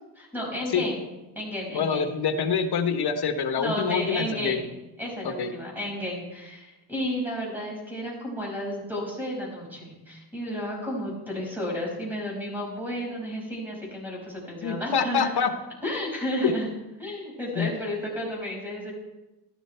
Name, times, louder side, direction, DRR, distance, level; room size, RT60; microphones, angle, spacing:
voice 1, 0.1-1.0 1.3-2.1 3.6-4.6 5.0-15.3 15.8-16.7 17.0-18.9, equal, 5° right, -2 dB, 5.8 m, -32 dB
voice 2, 1.7-4.7 5.2-5.5 14.6-15.5 16.4-16.6 17.6-17.7, left 6 dB, 60° left, 7 dB, 1.3 m, -26 dB
15.0 x 12.0 x 4.5 m, 1.0 s
wide cardioid pair, 145°, 43 cm